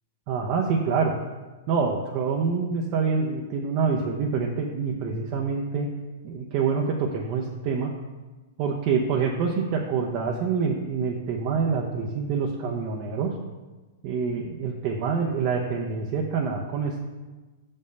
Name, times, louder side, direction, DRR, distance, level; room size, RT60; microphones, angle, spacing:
voice 1, 0.3-1.2 1.7-5.9 6.2-7.9 8.6-13.3 14.0-17.0, right 5 dB, 40° right, 0 dB, 0.9 m, -26 dB
6.3 x 5.5 x 6.7 m, 1.2 s
hypercardioid pair, 145°, 0 cm